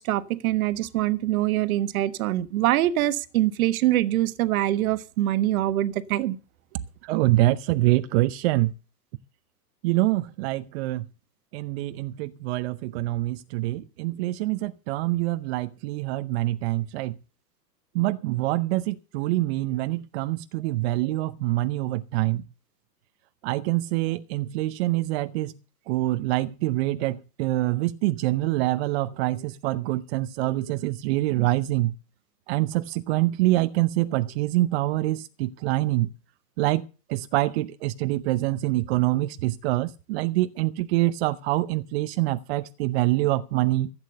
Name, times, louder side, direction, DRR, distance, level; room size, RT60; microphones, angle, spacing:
voice 1, 0.0-6.4, right 14 dB, 55° right, 1.4 m, -24 dB
voice 2, 7.0-8.7 9.8-11.1 11.5-17.2 17.9-22.4 23.4-25.5 25.9-31.9 32.5-36.1 36.6-43.9, right 17 dB, 40° right, 0.7 m, -25 dB
15.5 x 8.8 x 6.8 m
hypercardioid pair, 125°, 50 cm